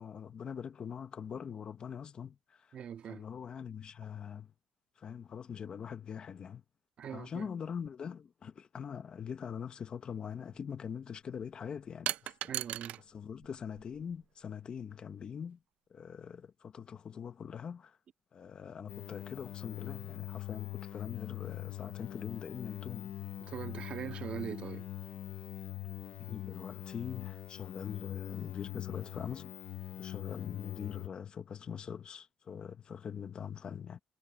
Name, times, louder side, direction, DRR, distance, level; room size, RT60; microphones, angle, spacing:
voice 1, 0.0-2.8 3.1-4.5 5.0-6.6 7.1-12.3 13.1-15.6 15.9-18.0 18.3-23.2 26.2-29.5 30.0-34.0, left 7 dB, 40° left, 1.7 m, -43 dB
voice 2, 2.7-3.2 7.0-7.5 12.5-13.0 23.4-24.9, right 8 dB, 50° right, 2.1 m, -41 dB
sound 1, 10.1-10.3 12.1-13.0 13.4-14.2, right 13 dB, 65° right, 0.4 m, -38 dB
sound 2, 18.9-31.1, left 14 dB, 65° left, 1.2 m, -43 dB
cardioid pair, 130°, 2 cm